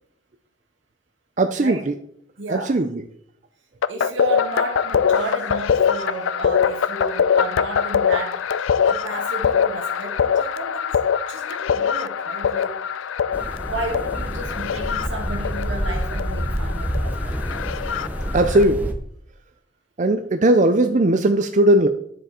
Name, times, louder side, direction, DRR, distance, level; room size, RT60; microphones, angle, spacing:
voice 1, 1.4-1.9 2.5-3.0 18.3-18.9 20.0-21.9, right 1 dB, 40° right, 7 dB, 0.5 m, -18 dB
voice 2, 2.4-2.8 3.9-10.8 11.3-12.8 13.6-17.4, right 2 dB, 75° right, 3 dB, 2.1 m, -32 dB
sound 1, 3.8-18.6, left 7 dB, 90° left, 0.4 m, -23 dB
sound 2, 13.3-18.9, equal, 10° right, 0.8 m, -28 dB
10.0 x 7.6 x 4.3 m, 0.69 s
head